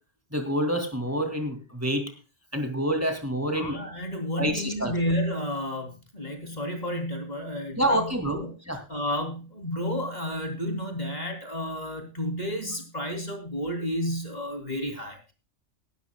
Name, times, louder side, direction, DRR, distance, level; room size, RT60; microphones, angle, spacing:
voice 1, 0.3-2.1 2.5-3.8 4.4-4.9 7.8-8.4 8.7-8.8, equal, 10° right, 5 dB, 2.4 m, -27 dB
voice 2, 3.5-8.5 8.9-15.3, equal, 35° left, 4 dB, 3.3 m, -31 dB
18.0 x 12.5 x 2.3 m, 0.32 s
omnidirectional pair, 1.2 m